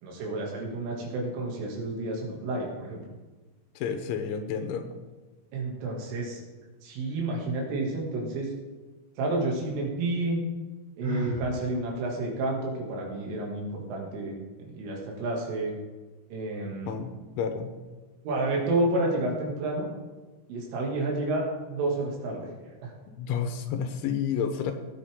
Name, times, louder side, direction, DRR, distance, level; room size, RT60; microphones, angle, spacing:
voice 1, 0.0-3.0 5.5-6.4 6.8-8.5 9.2-10.4 11.0-14.4 14.6-15.7 16.3-17.0 18.2-19.9 20.5-22.5 22.8-22.9, right 2 dB, 75° right, -1 dB, 4.8 m, -30 dB
voice 2, 3.8-4.9 16.9-17.1 17.4-17.7 23.2-24.7, left 7 dB, 80° left, 7 dB, 3.1 m, -30 dB
Sigh, 11.0-11.5, left 1 dB, 45° right, 4.0 m, -33 dB
18.5 x 8.4 x 3.7 m, 1.3 s
omnidirectional pair, 5.8 m